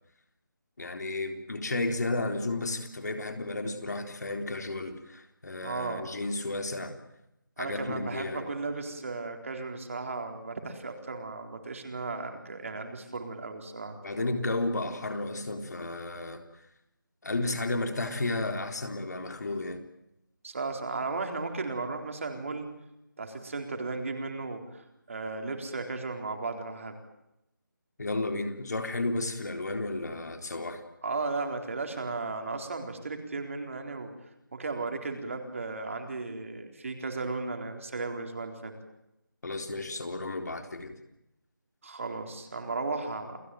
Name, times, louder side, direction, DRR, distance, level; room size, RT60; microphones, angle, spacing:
voice 1, 0.8-6.9 7.6-8.5 14.0-16.4 17.2-19.8 28.0-30.8 39.4-41.0, left 2 dB, 55° left, 6 dB, 3.8 m, -33 dB
voice 2, 5.6-6.1 7.6-14.3 20.4-22.7 23.2-27.0 31.0-34.1 34.5-38.7 41.8-43.4, right 3 dB, 40° right, 4 dB, 4.1 m, -35 dB
29.0 x 18.0 x 9.3 m, 0.88 s
figure-of-eight pair, 170°, 11 cm